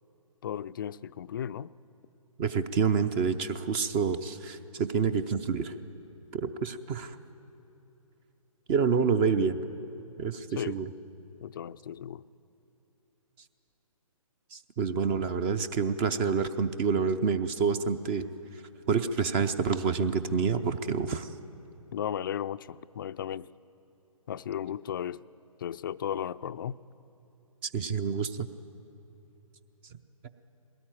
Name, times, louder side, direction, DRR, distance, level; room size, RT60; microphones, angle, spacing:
voice 1, 0.4-1.7 10.6-10.8 11.4-12.2 21.9-23.5 24.3-25.2 25.6-26.8, left 9 dB, 35° left, 14 dB, 0.4 m, -35 dB
voice 2, 2.4-5.7 6.3-7.2 8.7-9.6 10.2-10.9 14.5-18.3 18.5-18.6 18.9-21.3 27.6-28.5, right 5 dB, 20° right, 13 dB, 0.5 m, -28 dB
21.0 x 18.0 x 9.2 m, 3.0 s
figure-of-eight pair, 145°, 18 cm